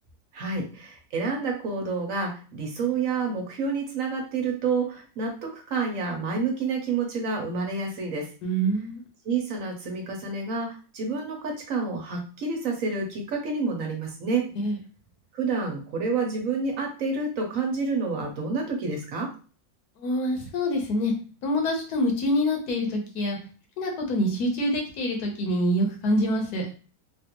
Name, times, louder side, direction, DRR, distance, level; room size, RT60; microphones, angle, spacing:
voice 1, 0.3-8.3 9.2-14.5 15.3-19.3, right 4 dB, 65° right, 1 dB, 1.1 m, -29 dB
voice 2, 8.4-9.0 14.6-14.8 20.0-21.1 21.4-23.4 23.8-26.7, equal, 80° left, 2 dB, 1.4 m, -26 dB
3.3 x 2.4 x 2.9 m, 0.37 s
omnidirectional pair, 1.6 m